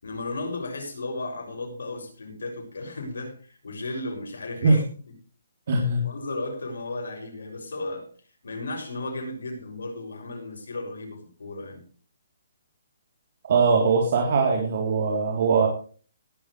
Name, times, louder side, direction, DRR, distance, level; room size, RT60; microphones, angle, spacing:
voice 1, 0.0-4.8 6.0-8.1 8.4-11.8, left 2 dB, 80° left, 1 dB, 6.8 m, -34 dB
voice 2, 5.7-6.0 13.4-15.7, right 4 dB, 55° right, 0 dB, 3.5 m, -21 dB
18.0 x 11.5 x 3.3 m, 0.42 s
hypercardioid pair, 155°, 0 cm